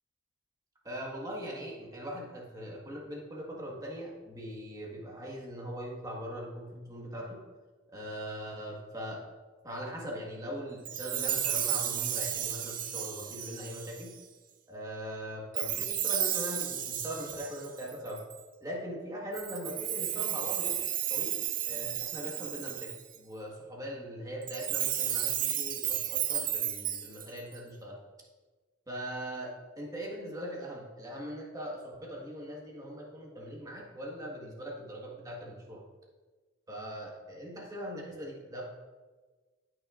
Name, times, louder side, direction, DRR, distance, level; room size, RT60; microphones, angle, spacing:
voice 1, 0.8-7.4 7.9-9.3 9.6-14.2 14.7-18.2 18.6-20.8 21.1-28.0 28.9-35.8 36.7-38.6, equal, 20° right, -2 dB, 1.6 m, -41 dB
Chime, 10.8-14.2 15.5-18.4 19.3-23.2 24.4-27.6, right 10 dB, 45° right, 0.6 m, -33 dB
14.5 x 6.3 x 2.5 m, 1.3 s
head